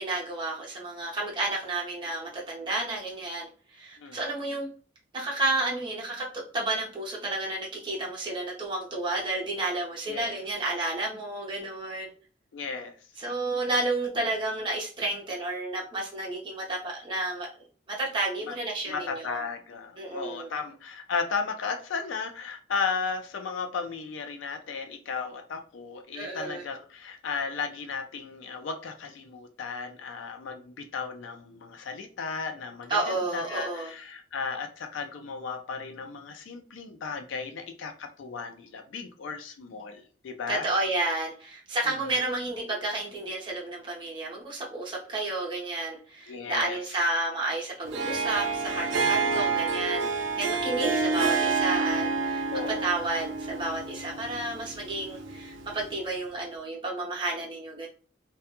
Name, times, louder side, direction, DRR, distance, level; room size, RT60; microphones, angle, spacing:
voice 1, 0.0-4.7 5.1-12.1 13.2-17.5 17.9-19.4 20.0-20.5 26.1-26.6 32.9-33.9 40.5-57.9, right 2 dB, 25° right, -3 dB, 0.6 m, -31 dB
voice 2, 12.5-12.9 18.5-18.6 18.9-40.7 41.9-42.2 46.3-46.8 48.9-49.6 52.5-52.9, left 5 dB, 80° left, 6 dB, 0.4 m, -35 dB
Harp, 47.8-56.1, right 4 dB, 80° right, 0.5 m, -29 dB
2.2 x 2.1 x 2.8 m, 0.41 s
head